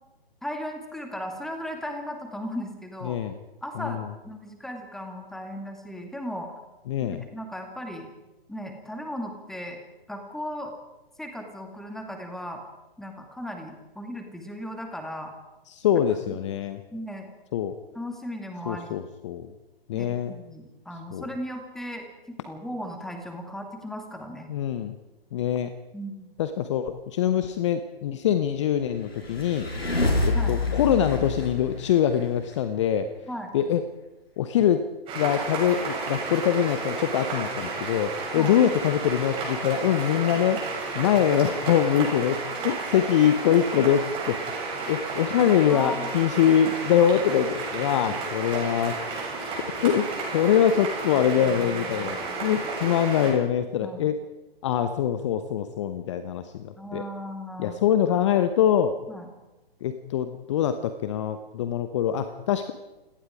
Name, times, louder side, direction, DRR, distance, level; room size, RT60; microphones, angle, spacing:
voice 1, 0.4-3.2 3.6-6.6 7.0-8.1 8.5-9.8 10.1-10.7 11.2-12.6 13.0-15.3 16.3-16.4 16.9-17.3 17.9-19.0 19.9-24.5 25.9-26.3 30.3-30.6 33.3-33.5 38.4-38.6 45.7-46.1 53.8-54.1 56.8-57.8 59.1-59.3, equal, ahead, 4 dB, 2.2 m, -37 dB
voice 2, 3.0-3.4 3.8-4.0 6.9-7.2 15.7-16.8 17.5-17.7 18.7-19.5 19.9-20.3 21.1-21.2 24.5-24.9 25.3-25.7 26.4-29.7 30.2-33.1 33.5-33.8 34.4-34.8 35.1-44.4 44.9-49.0 49.8-54.2 54.6-57.0 57.6-58.9 59.8-62.7, left 9 dB, 30° left, 10 dB, 1.0 m, -24 dB
sound 1, 29.0-32.5, left 2 dB, 80° left, 6.0 m, -27 dB
sound 2, 35.1-53.3, right 3 dB, 15° right, 7.2 m, -32 dB
29.0 x 18.0 x 5.0 m, 1.0 s
figure-of-eight pair, 135°, 30 cm